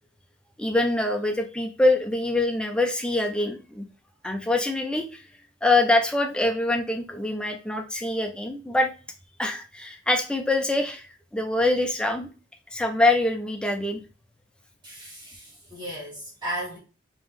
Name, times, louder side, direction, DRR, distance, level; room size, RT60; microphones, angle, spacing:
voice 1, 0.6-3.8 4.2-5.2 5.6-8.9 9.4-12.3 12.7-14.0, left 2 dB, 5° left, 0.5 m, -24 dB
voice 2, 14.8-16.8, equal, 20° right, 1.7 m, -35 dB
3.5 x 3.0 x 3.5 m
head